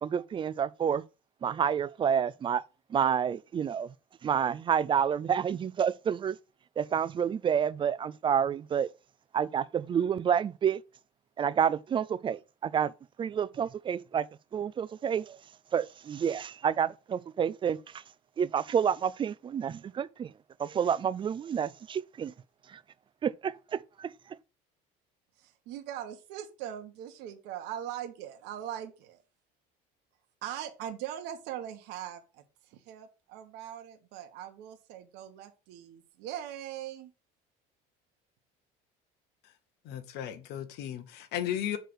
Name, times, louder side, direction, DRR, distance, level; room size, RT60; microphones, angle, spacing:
voice 1, 0.0-1.0 1.4-2.6 2.9-3.9 4.2-6.4 6.8-8.9 9.3-10.8 11.4-12.9 13.2-14.2 14.5-15.4 15.7-17.8 18.4-20.3 20.6-22.3 23.2-24.1, right 8 dB, 30° right, 0.4 m, -29 dB
voice 2, 25.4-29.2 30.4-37.1, right 11 dB, 75° right, 1.2 m, -41 dB
voice 3, 39.8-41.8, left 10 dB, 65° left, 1.1 m, -35 dB
6.4 x 3.4 x 6.0 m
cardioid pair, 110°, 18 cm